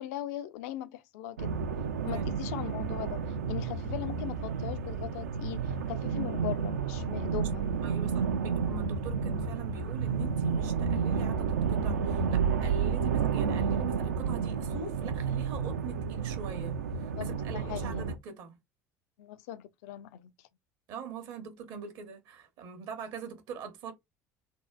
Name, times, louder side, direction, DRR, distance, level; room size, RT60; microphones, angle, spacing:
voice 1, 0.0-1.5 2.0-7.7 17.2-17.3 17.5-18.0 19.2-20.5, left 13 dB, 70° left, 0.4 m, -39 dB
sound 1, 1.4-18.2, right 6 dB, 80° right, 0.4 m, -31 dB
voice 2, 7.8-18.6 20.9-23.9, right 5 dB, 60° right, 0.8 m, -43 dB
2.6 x 2.1 x 2.3 m
hypercardioid pair, 65°, 9 cm